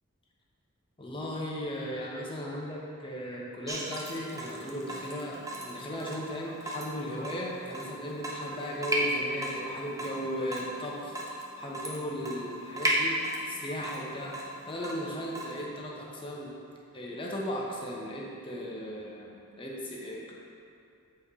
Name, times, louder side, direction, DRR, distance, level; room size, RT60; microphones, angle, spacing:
voice 1, 1.0-14.4 14.7-16.5 16.9-20.3, equal, 25° left, -3 dB, 0.8 m, -36 dB
Water tap faucet / Drip, 3.7-15.6, right 1 dB, 15° right, 0.6 m, -35 dB
8.2 x 4.3 x 3.6 m, 2.6 s
head